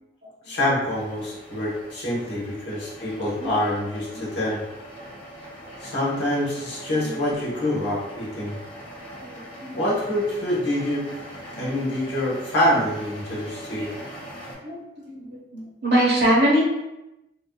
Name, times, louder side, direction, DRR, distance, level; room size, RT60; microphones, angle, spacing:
voice 1, 0.4-4.6 5.8-8.6 9.7-11.0 11.6-13.9, left 1 dB, 70° left, -7 dB, 1.2 m, -26 dB
sound 1, 0.8-14.5, equal, 25° left, 1.1 m, -41 dB
voice 2, 9.2-9.7 11.5-11.7 14.6-14.8 15.1-16.6, right 1 dB, 60° right, -6 dB, 1.2 m, -23 dB
3.6 x 2.6 x 2.3 m, 0.95 s
head